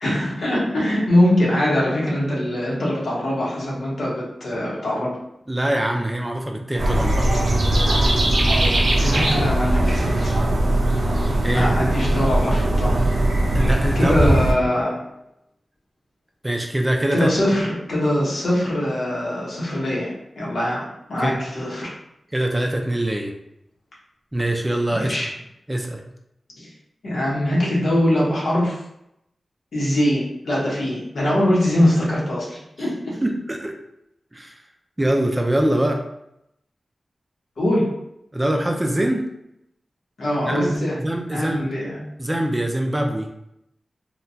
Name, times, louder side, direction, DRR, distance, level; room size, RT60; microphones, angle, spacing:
voice 1, 0.0-5.2 9.0-10.3 11.5-13.0 13.9-15.1 17.1-21.9 24.9-25.3 26.6-26.7 27.0-28.8 29.7-33.2 37.6-38.0 40.2-41.0 41.3-42.0, left 1 dB, 80° left, -5 dB, 0.9 m, -22 dB
voice 2, 5.5-7.3 11.4-11.9 13.5-14.2 16.4-17.3 21.2-21.4 22.3-23.3 24.3-25.1 25.7-26.0 33.2-33.7 34.3-34.6 35.0-36.0 38.3-39.2 40.5-41.7 42.2-43.3, right 1 dB, 20° right, 2 dB, 0.4 m, -23 dB
sound 1, 6.8-14.5, right 1 dB, 80° right, 0.5 m, -19 dB
2.8 x 2.2 x 2.7 m, 0.81 s
cardioid pair, 55°, 0 cm